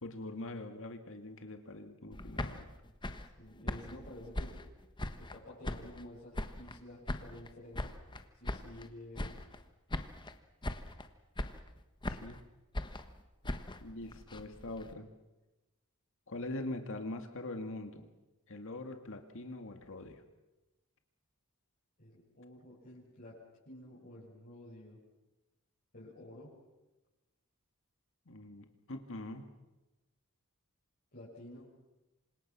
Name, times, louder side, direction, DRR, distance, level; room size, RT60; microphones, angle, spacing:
voice 1, 0.0-2.7 12.1-12.4 13.8-15.1 16.3-18.1 18.5-20.2 28.3-29.4, left 2 dB, 65° left, 6 dB, 2.2 m, -43 dB
sound 1, 2.1-5.4 5.6-6.8 7.1-8.9 9.1-9.6 9.9-10.4 10.6-11.1 11.4-12.4 12.7-14.9, left 1 dB, 20° left, 1.3 m, -40 dB
voice 2, 3.4-4.6 5.2-8.0 8.4-9.4 22.0-25.0 25.9-26.6 31.1-31.7, left 1 dB, 45° left, -9 dB, 7.2 m, -51 dB
28.0 x 25.5 x 6.2 m, 1.0 s
head